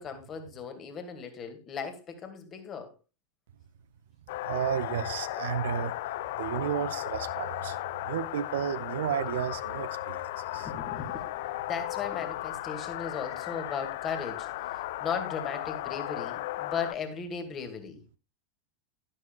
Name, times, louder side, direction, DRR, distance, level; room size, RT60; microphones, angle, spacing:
voice 1, 0.0-2.9 10.5-18.0, left 6 dB, 30° left, 2.1 m, -37 dB
sound 1, 4.3-16.9, left 16 dB, 50° left, 0.4 m, -35 dB
voice 2, 4.4-5.9 6.4-10.2 10.5-10.7, right 10 dB, 60° right, 0.6 m, -32 dB
11.5 x 11.0 x 2.3 m
figure-of-eight pair, 90°, 0 cm